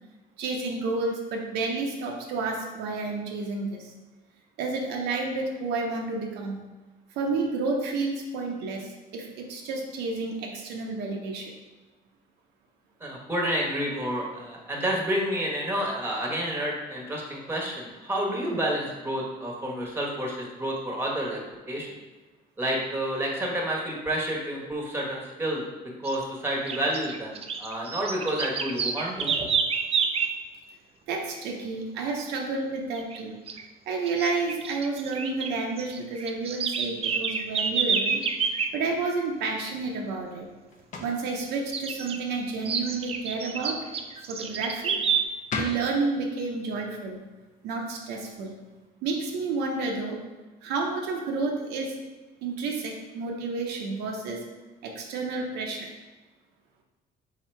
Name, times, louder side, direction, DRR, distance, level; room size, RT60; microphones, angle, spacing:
voice 1, 0.4-3.9 4.6-6.6 7.1-11.5 31.1-33.4 33.9-38.2 38.7-40.5 41.0-43.9 44.3-45.0 45.6-47.2 47.6-48.6 49.0-50.2 50.6-52.0 52.4-54.4 54.8-55.9, right 3 dB, 85° right, 1 dB, 0.7 m, -30 dB
voice 2, 13.0-21.4 21.7-21.9 22.6-25.6 26.0-29.5, right 1 dB, 15° right, -2 dB, 1.1 m, -29 dB
sound 1, 26.0-26.2 26.7-30.4 32.9-33.2 33.5-33.6 34.1-35.5 35.8-38.7 41.7-42.2 42.6-45.2, right 6 dB, 35° right, 0.4 m, -28 dB
sound 2, 39.7-48.9, left 3 dB, 50° left, 0.8 m, -43 dB
4.1 x 2.8 x 4.4 m, 1.2 s
cardioid pair, 110°, 17 cm